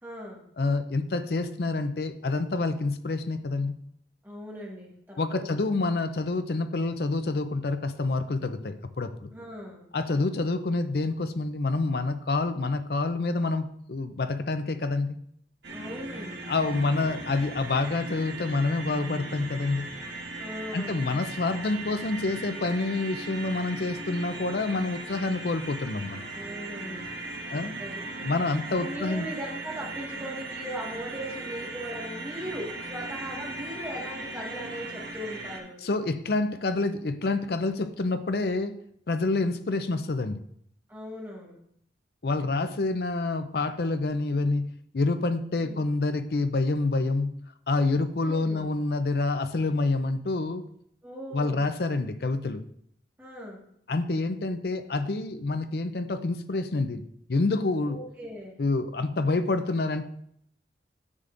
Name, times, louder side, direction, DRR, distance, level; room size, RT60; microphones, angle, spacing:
voice 1, 0.0-0.4 4.2-5.7 9.3-9.9 15.7-16.4 20.4-21.0 26.3-27.1 27.7-28.3 28.8-35.8 40.9-41.6 45.5-45.8 48.2-48.7 51.0-51.7 53.2-53.6 57.9-58.6, equal, 10° right, -4 dB, 1.7 m, -39 dB
voice 2, 0.6-3.7 5.2-9.3 9.9-15.2 16.5-19.9 20.7-26.3 27.5-27.7 28.2-29.3 35.8-38.8 39.1-40.4 42.2-44.7 44.9-47.3 47.7-50.6 51.3-52.6 53.9-57.0 57.3-58.0 58.6-60.1, left 3 dB, 60° left, 11 dB, 0.5 m, -27 dB
sound 1, 15.6-35.6, right 2 dB, 75° right, 1.5 m, -38 dB
9.8 x 7.3 x 2.6 m, 0.69 s
head